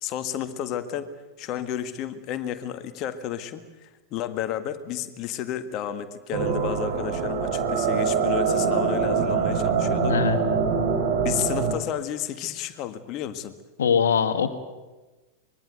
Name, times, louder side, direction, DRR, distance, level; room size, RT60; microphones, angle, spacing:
voice 1, 0.0-1.1 1.4-10.2 11.2-13.5, left 10 dB, 40° left, 10 dB, 1.8 m, -32 dB
sound 1, 6.3-11.7, right 5 dB, 50° right, 4.1 m, -24 dB
voice 2, 10.0-10.4 13.8-14.5, left 7 dB, 65° left, 9 dB, 1.8 m, -22 dB
24.5 x 21.5 x 8.1 m, 1.2 s
figure-of-eight pair, 90°, 0 cm